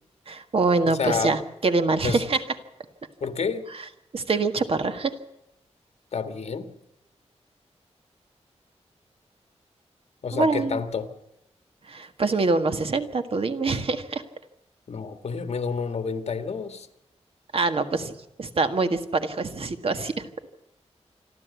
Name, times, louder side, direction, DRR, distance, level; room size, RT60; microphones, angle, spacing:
voice 1, 0.3-2.4 4.1-5.1 10.3-10.8 11.9-14.2 17.5-18.1 18.4-20.3, right 3 dB, 55° right, 8 dB, 1.7 m, -24 dB
voice 2, 0.9-1.4 2.0-2.2 3.2-3.7 6.1-6.7 10.2-11.1 14.9-16.9, left 5 dB, 65° left, 9 dB, 1.8 m, -29 dB
27.0 x 12.5 x 8.3 m, 0.87 s
wide cardioid pair, 135°, 12 cm